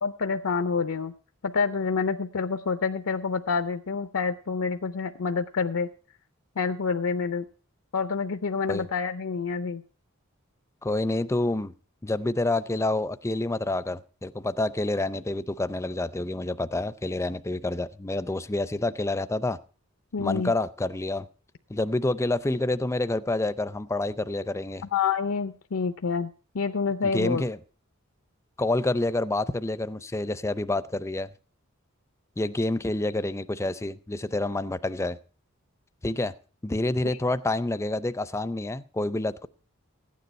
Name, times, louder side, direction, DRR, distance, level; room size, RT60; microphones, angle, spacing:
voice 1, 0.0-1.1 1.4-5.9 6.6-7.4 7.9-9.8 20.1-20.5 24.9-27.4 37.0-37.2, left 5 dB, 80° left, 0.6 m, -28 dB
voice 2, 10.8-11.7 12.0-19.6 20.2-21.3 21.7-24.8 27.0-27.6 28.6-31.3 32.4-35.2 36.0-36.3 36.6-39.5, left 2 dB, 15° left, 0.4 m, -28 dB
14.5 x 9.4 x 4.2 m
head